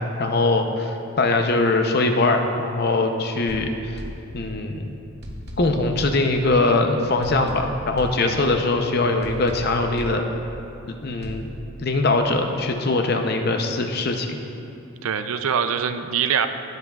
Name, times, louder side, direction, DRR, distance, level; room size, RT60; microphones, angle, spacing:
voice 1, 0.0-3.9 4.3-5.0 5.6-10.3 10.9-11.5 11.8-14.4, left 2 dB, 45° left, 4 dB, 0.7 m, -22 dB
sound 1, 3.5-4.8 5.2-6.8 7.2-8.8 9.2-10.8 11.2-11.5, left 1 dB, 50° right, 0.9 m, -37 dB
voice 2, 15.0-16.5, right 7 dB, 80° right, 9 dB, 0.5 m, -24 dB
17.0 x 7.8 x 2.4 m, 2.7 s
head